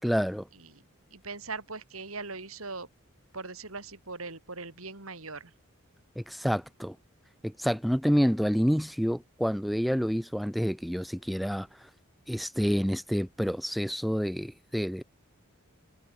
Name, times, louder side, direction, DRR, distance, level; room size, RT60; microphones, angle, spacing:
voice 1, 0.0-0.5 6.2-7.0 7.4-11.7 12.3-15.0, equal, ahead, 2.8 m, -28 dB
voice 2, 0.5-0.8 1.1-2.9 3.3-5.5, right 4 dB, 90° right, 5.3 m, -40 dB
head